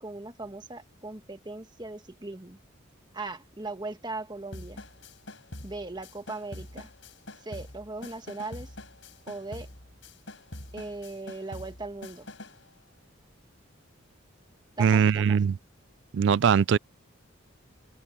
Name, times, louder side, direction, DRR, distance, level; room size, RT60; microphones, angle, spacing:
voice 1, 0.0-2.6 3.1-4.8 5.6-6.9 7.4-8.7 9.3-9.7 10.7-12.3 14.8-15.4, right 2 dB, 20° right, 1.5 m, -38 dB
sound 1, 4.5-12.7, left 1 dB, 65° left, 5.6 m, -45 dB
voice 2, 14.8-15.6 16.1-16.8, right 7 dB, 60° right, 0.3 m, -21 dB
head